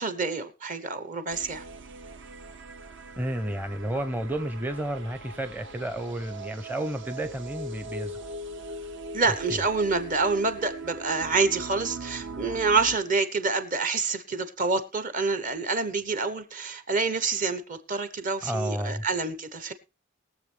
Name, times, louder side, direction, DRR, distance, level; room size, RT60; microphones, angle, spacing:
voice 1, 0.0-1.6 9.1-19.7, right 4 dB, 40° right, 1.0 m, -27 dB
sound 1, 1.3-13.0, right 2 dB, 60° right, 0.8 m, -41 dB
voice 2, 3.2-8.3 9.5-9.6 18.4-19.0, right 1 dB, 10° right, 0.7 m, -31 dB
21.5 x 7.2 x 3.4 m
head